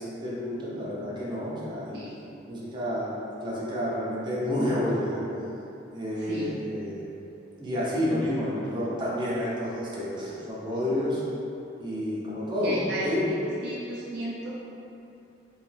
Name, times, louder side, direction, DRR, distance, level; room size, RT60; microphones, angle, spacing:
voice 1, 0.0-2.0 2.5-5.2 5.9-7.0 7.5-11.2 11.8-13.3, left 1 dB, 25° right, -8 dB, 0.8 m, -30 dB
voice 2, 6.2-6.5 12.6-13.1 13.6-14.5, right 2 dB, 60° right, -6 dB, 0.5 m, -34 dB
3.3 x 3.0 x 3.3 m, 2.8 s
head